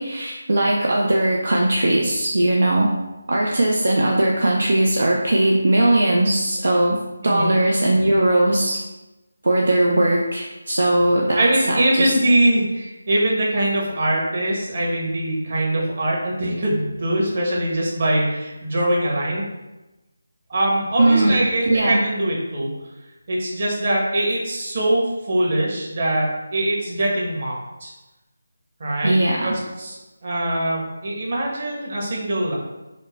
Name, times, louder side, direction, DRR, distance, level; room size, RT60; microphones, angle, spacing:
voice 1, 0.0-2.9 3.3-8.8 9.4-12.1 21.0-21.4 21.7-22.0 29.0-29.5, right 1 dB, 70° right, -2 dB, 0.6 m, -19 dB
voice 2, 11.4-19.5 20.5-22.7 23.3-27.9 28.8-32.5, right 1 dB, 45° right, -3 dB, 1.3 m, -22 dB
5.1 x 2.1 x 4.1 m, 1.1 s
figure-of-eight pair, 160°, 0 cm